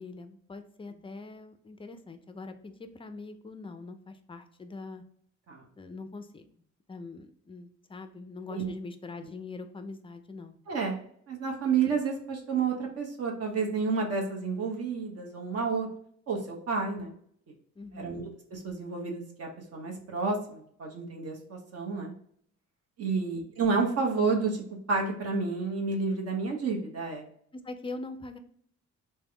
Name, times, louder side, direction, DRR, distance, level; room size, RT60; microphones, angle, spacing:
voice 1, 0.0-5.0 5.8-6.4 6.9-10.6 16.8-17.1 17.8-18.2 23.1-23.4 27.5-28.4, left 3 dB, 20° left, 8 dB, 0.4 m, -43 dB
voice 2, 10.7-11.0 11.3-15.9 16.3-17.1 17.9-22.1 23.0-24.6 24.9-27.2, right 4 dB, 55° right, 1 dB, 0.9 m, -30 dB
3.5 x 2.2 x 3.3 m, 0.65 s
cardioid pair, 90°, 30 cm